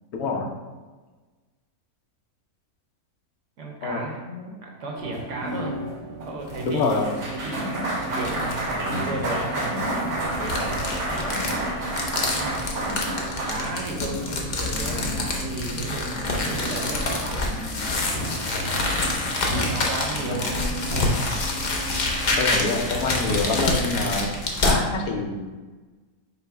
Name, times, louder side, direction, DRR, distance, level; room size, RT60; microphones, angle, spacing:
voice 1, 0.1-0.5 3.8-4.0 6.6-7.1 20.3-20.4 22.4-24.3 24.6-25.5, left 3 dB, 85° left, 1 dB, 1.2 m, -26 dB
voice 2, 3.6-5.8 6.2-7.7 8.0-11.5 13.5-17.9 18.6-18.7 19.6-20.6, right 2 dB, 60° right, 0 dB, 1.0 m, -34 dB
sound 1, 5.0-24.7, right 1 dB, 90° right, 1.7 m, -32 dB
sound 2, 6.5-7.0 7.5-7.6 8.1-8.7 9.6-24.8, left 2 dB, 55° left, 0.5 m, -27 dB
sound 3, 6.9-24.0, equal, 35° right, 0.6 m, -39 dB
5.5 x 2.0 x 4.6 m, 1.3 s
omnidirectional pair, 1.5 m